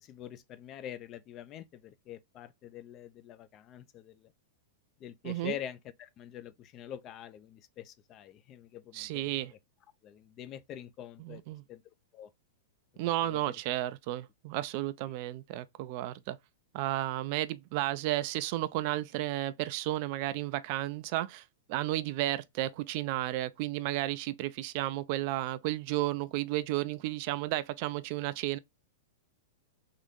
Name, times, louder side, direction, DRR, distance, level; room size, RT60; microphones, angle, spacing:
voice 1, 0.0-4.3 5.0-9.3 10.0-11.4 11.7-11.8 12.1-12.3 13.2-13.4, left 11 dB, 35° left, 0.4 m, -45 dB
voice 2, 5.2-5.6 8.9-9.5 11.2-11.6 13.0-16.4 16.7-21.4 21.7-28.6, right 15 dB, 50° right, 0.4 m, -33 dB
3.7 x 2.6 x 3.6 m
hypercardioid pair, 105°, 0 cm